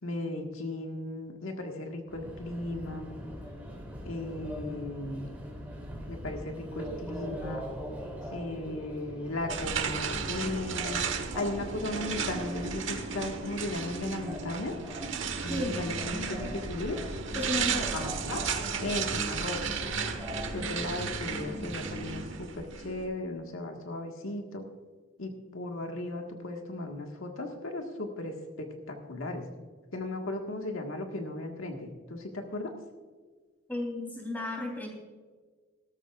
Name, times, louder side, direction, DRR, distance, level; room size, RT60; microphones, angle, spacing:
voice 1, 0.0-3.1 4.0-5.3 6.1-7.6 8.3-14.8 15.4-17.0 17.9-18.4 18.8-19.8 20.5-24.6 25.2-29.4 29.9-32.7, left 2 dB, 80° left, 2 dB, 1.7 m, -36 dB
Subway metro underground, 2.1-21.3, equal, 10° right, 3.1 m, -42 dB
sound 1, 9.5-23.1, right 5 dB, 65° right, 1.4 m, -34 dB
voice 2, 15.5-16.5 17.3-18.1 33.7-34.9, left 1 dB, 10° left, 0 dB, 3.4 m, -34 dB
17.5 x 13.5 x 2.5 m, 1.4 s
head